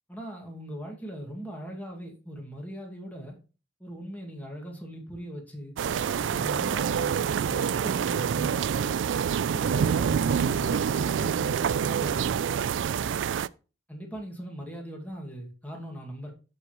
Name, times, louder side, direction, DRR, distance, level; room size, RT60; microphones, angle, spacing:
voice 1, 0.1-3.4 3.8-5.8 6.1-8.9 9.5-12.4 13.9-16.3, equal, 10° left, 2.1 m, -40 dB
sound 1, 5.8-13.5, right 7 dB, 90° right, 0.3 m, -26 dB
13.5 x 4.8 x 3.1 m
head